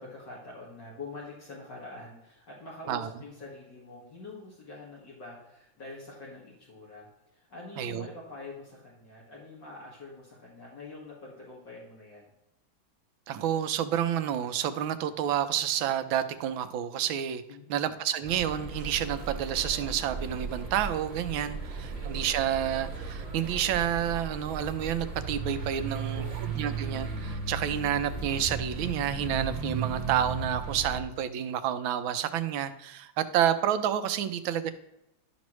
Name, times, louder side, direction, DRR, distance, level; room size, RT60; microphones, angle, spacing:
voice 1, 0.0-7.1 7.3-12.3 17.5-17.8 21.5-22.0 25.7-26.8, left 3 dB, 60° left, -6 dB, 2.5 m, -45 dB
voice 2, 7.8-8.1 13.3-17.4 17.7-34.7, right 10 dB, 90° right, 10 dB, 1.5 m, -29 dB
sound 1, 18.2-31.0, right 4 dB, 25° right, 1.0 m, -36 dB
11.5 x 6.2 x 3.1 m, 0.90 s
omnidirectional pair, 2.1 m